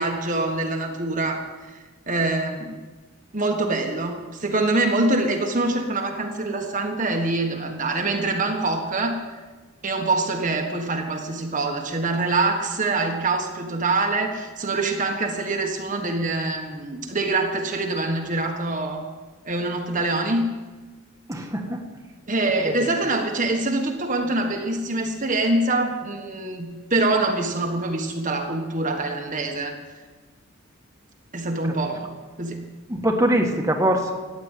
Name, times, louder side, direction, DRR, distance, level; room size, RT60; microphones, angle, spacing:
voice 1, 0.0-2.7 3.3-9.3 9.8-19.1 19.4-20.6 22.3-29.8 31.3-32.1 32.4-32.7, right 2 dB, 35° right, 3 dB, 1.4 m, -25 dB
voice 2, 21.3-21.8 22.6-22.8 32.9-34.1, right 1 dB, 15° right, 2 dB, 1.5 m, -22 dB
15.5 x 9.7 x 9.2 m, 1.3 s
head